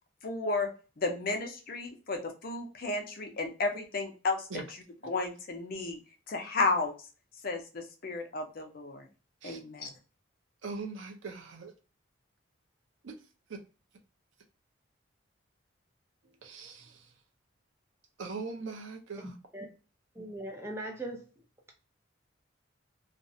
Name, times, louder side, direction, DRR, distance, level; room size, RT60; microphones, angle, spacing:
voice 1, 0.2-0.7 1.0-6.0 6.3-6.9 7.4-9.1 9.4-9.9, left 3 dB, 50° left, 0.6 m, -33 dB
voice 2, 10.6-11.7 13.0-13.2 13.5-13.6 16.4-17.1 18.2-19.3, right 4 dB, 80° right, 0.6 m, -41 dB
voice 3, 19.2-19.7 20.2-21.2, right 1 dB, 15° right, 0.5 m, -40 dB
2.5 x 2.0 x 2.5 m
head